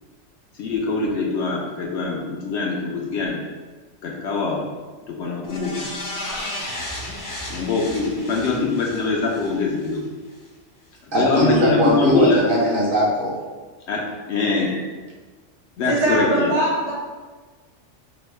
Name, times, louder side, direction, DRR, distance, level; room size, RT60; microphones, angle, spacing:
voice 1, 0.6-3.4 4.0-4.6 5.1-5.9 7.5-10.0 11.1-12.4 13.9-14.7 15.8-16.5, left 4 dB, 65° left, -2 dB, 0.8 m, -23 dB
sound 1, 5.4-10.0 10.4-10.5, left 1 dB, 30° left, 0.4 m, -33 dB
voice 2, 11.1-13.4 14.6-14.8, right 1 dB, 50° right, -5 dB, 0.8 m, -20 dB
voice 3, 15.8-16.9, right 1 dB, 70° right, -7 dB, 1.7 m, -21 dB
5.1 x 2.1 x 3.1 m, 1.4 s
omnidirectional pair, 1.4 m